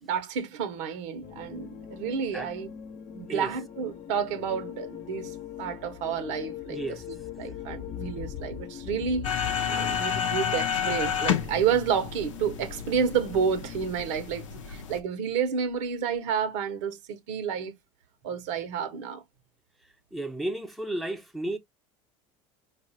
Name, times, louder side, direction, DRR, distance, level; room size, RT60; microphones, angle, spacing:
voice 1, 0.0-2.7 3.1-6.8 7.4-9.3 9.7-17.7 18.2-19.2, right 7 dB, 75° right, 1.0 m, -30 dB
sound 1, 1.2-13.9, left 10 dB, 45° left, 0.8 m, -41 dB
voice 2, 6.7-7.1 20.1-21.6, right 1 dB, ahead, 0.6 m, -33 dB
sound 2, 9.2-15.0, left 8 dB, 90° left, 0.6 m, -30 dB
4.7 x 2.5 x 2.6 m
hypercardioid pair, 85°, 16 cm